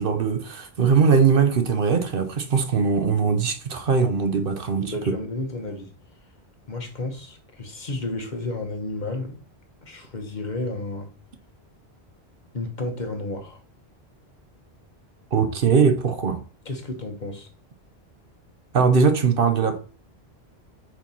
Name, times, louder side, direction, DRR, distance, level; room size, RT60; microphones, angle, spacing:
voice 1, 0.0-4.9 15.3-16.4 18.7-19.8, right 5 dB, 60° right, 1.0 m, -20 dB
voice 2, 4.7-5.9 6.7-9.4 9.8-11.1 12.5-13.6 16.6-17.5, left 2 dB, 45° left, 1.3 m, -32 dB
4.6 x 4.4 x 5.4 m
omnidirectional pair, 1.1 m